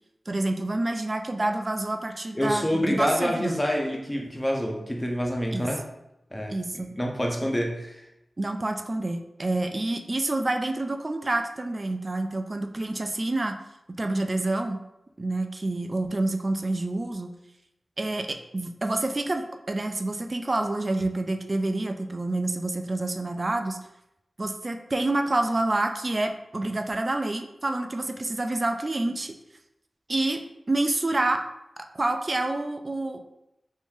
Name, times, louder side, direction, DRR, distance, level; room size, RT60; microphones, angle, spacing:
voice 1, 0.3-3.6 5.5-5.6 6.5-6.9 8.4-13.6 13.9-14.8 15.2-17.4 18.0-23.8 24.4-29.3 30.1-31.4 31.8-33.2, right 2 dB, 35° right, 6 dB, 0.3 m, -28 dB
voice 2, 2.3-5.8 6.3-8.1, equal, 15° left, 1 dB, 0.7 m, -27 dB
3.1 x 2.6 x 3.5 m, 0.86 s
wide cardioid pair, 65°, 0 cm